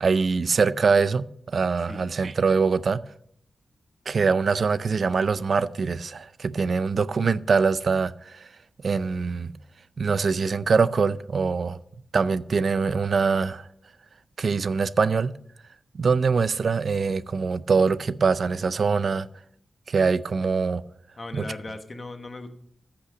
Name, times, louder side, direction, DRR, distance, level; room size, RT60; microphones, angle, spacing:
voice 1, 0.0-3.0 4.1-8.5 8.8-9.5 10.0-11.8 12.1-13.7 14.4-15.3 15.9-19.3 19.9-20.8 21.3-21.4, right 5 dB, 55° right, 0.4 m, -23 dB
voice 2, 21.2-22.5, left 2 dB, 35° left, 1.2 m, -37 dB
14.0 x 5.8 x 5.1 m
wide cardioid pair, 125°, 0 cm